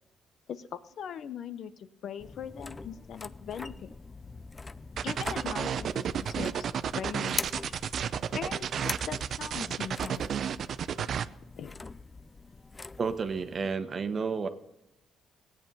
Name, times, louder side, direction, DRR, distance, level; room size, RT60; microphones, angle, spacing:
voice 1, 0.5-3.9 5.0-6.7 6.9-7.5 8.3-10.3 11.6-11.7, left 8 dB, 65° left, 14 dB, 0.8 m, -40 dB
sound 1, 2.2-13.7, left 3 dB, 25° left, 0.5 m, -43 dB
sound 2, 5.0-11.3, right 8 dB, 60° right, 0.6 m, -32 dB
voice 2, 13.0-14.5, right 5 dB, 40° right, 9 dB, 1.2 m, -31 dB
17.5 x 9.0 x 5.5 m, 0.93 s
cardioid pair, 90°, 0 cm